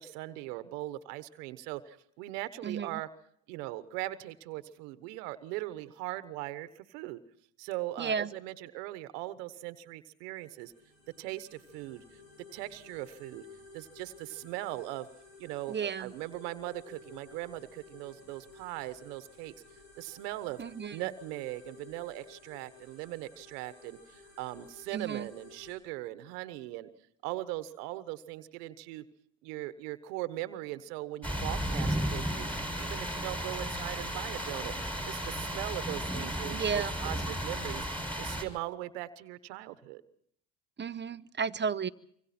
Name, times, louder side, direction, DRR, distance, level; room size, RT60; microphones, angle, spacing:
voice 1, 0.0-3.1 3.5-7.2 7.6-10.7 11.2-12.2 12.5-13.4 13.7-15.1 15.4-19.5 20.0-20.6 20.9-26.9 27.2-29.0 29.4-32.5 32.8-37.9 38.2-40.0, right 16 dB, 85° right, 13 dB, 1.3 m, -40 dB
voice 2, 2.6-3.0 8.0-8.3 15.7-16.1 20.6-21.0 24.9-25.3 36.5-36.9 40.8-41.9, right 6 dB, 25° right, 12 dB, 0.9 m, -33 dB
sound 1, 10.4-25.8, left 3 dB, 90° left, 7.1 m, -55 dB
sound 2, 31.2-38.4, equal, 5° left, 6.2 m, -34 dB
26.0 x 24.5 x 4.4 m, 0.67 s
hypercardioid pair, 70°, 47 cm